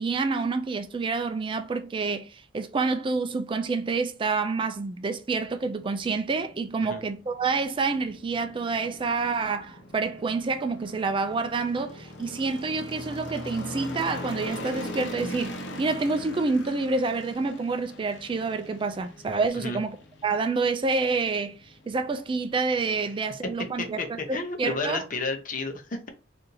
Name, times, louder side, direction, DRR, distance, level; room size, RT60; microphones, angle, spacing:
voice 1, 0.0-20.0 20.2-21.6 21.9-24.0 24.3-25.0, right 4 dB, 30° right, 0.3 m, -28 dB
sound 1, 5.4-24.7, left 1 dB, 90° left, 0.6 m, -42 dB
voice 2, 24.3-26.1, left 3 dB, 45° left, 0.7 m, -32 dB
2.8 x 2.6 x 3.8 m
head